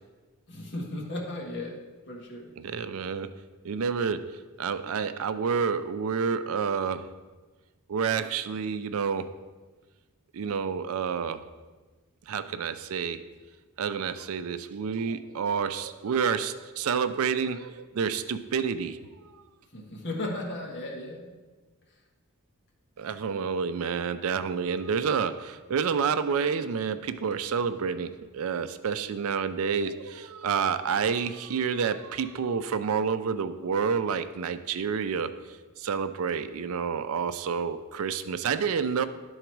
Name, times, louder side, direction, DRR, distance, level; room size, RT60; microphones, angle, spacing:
voice 1, 0.5-1.8 2.1-2.5 19.7-21.3, left 1 dB, 50° left, -1 dB, 1.5 m, -35 dB
voice 2, 2.6-3.3 3.6-7.1 7.9-9.3 10.3-11.4 12.3-13.2 13.8-19.0 23.0-35.3 35.8-39.1, right 6 dB, 65° right, 11 dB, 0.4 m, -29 dB
11.5 x 3.9 x 4.6 m, 1.3 s
head